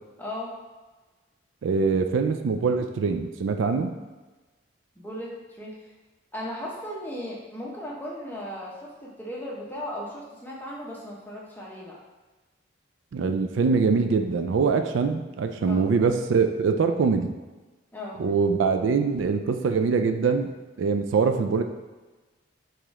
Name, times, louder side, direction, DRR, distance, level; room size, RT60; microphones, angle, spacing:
voice 1, 0.2-0.6 5.0-5.8 6.3-8.8 9.0-12.0 15.7-15.9 17.9-18.2, left 1 dB, 10° left, -4 dB, 0.8 m, -36 dB
voice 2, 1.6-3.9 13.1-17.3 18.2-20.5 20.8-21.6, right 5 dB, 80° right, 7 dB, 0.3 m, -23 dB
4.8 x 3.1 x 3.5 m, 1.2 s
head